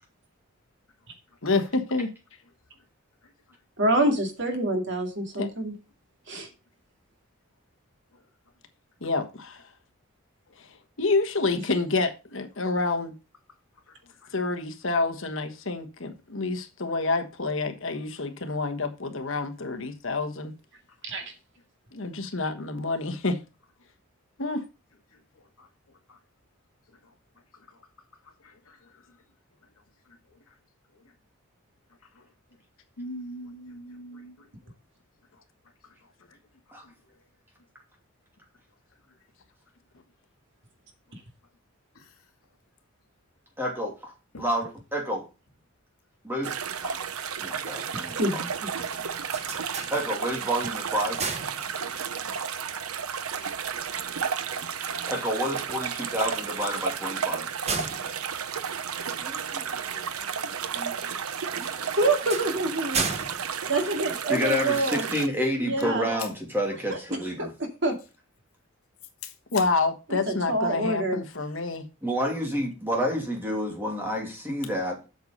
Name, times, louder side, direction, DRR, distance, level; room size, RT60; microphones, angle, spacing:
voice 1, 1.4-2.1 5.4-5.5 9.0-9.6 10.6-10.7 11.0-13.1 14.3-20.5 21.9-23.4 24.4-24.6 69.5-71.8, left 3 dB, 60° left, 1.3 m, -28 dB
voice 2, 3.2-3.6 8.1-8.2 10.5-10.8 13.9-14.3 21.2-21.3 25.1-25.7 26.1-26.2 26.9-27.1 27.5-27.9 28.4-29.2 30.1-30.5 30.9-31.1 32.1-32.3 33.0-34.7 35.3-35.4 35.8-36.4 36.8-37.2 41.9-42.1 44.3-44.4 48.8-49.9 51.6-52.5 53.4-54.5 54.9-55.1 66.2-66.3 69.2-69.6, left 2 dB, 90° left, 2.0 m, -46 dB
voice 3, 3.8-5.7 6.3-6.5 21.0-21.2 48.2-48.5 62.0-63.0 63.7-65.0 65.6-66.1 66.7-67.0 67.8-67.9 70.1-71.2, right 2 dB, 55° right, 2.2 m, -26 dB
voice 4, 43.6-44.1 44.4-45.2 46.2-46.6 46.8-47.0 47.4-48.4 49.9-51.2 55.1-57.5 59.2-61.9 64.3-67.5 72.0-75.0, equal, 10° right, 2.8 m, -30 dB
sound 1, 46.4-65.3, right 7 dB, 85° right, 0.8 m, -32 dB
sound 2, 49.2-50.5 50.9-52.2 56.0-59.5 61.6-64.6, right 4 dB, 30° right, 1.0 m, -35 dB
8.1 x 6.5 x 5.3 m
head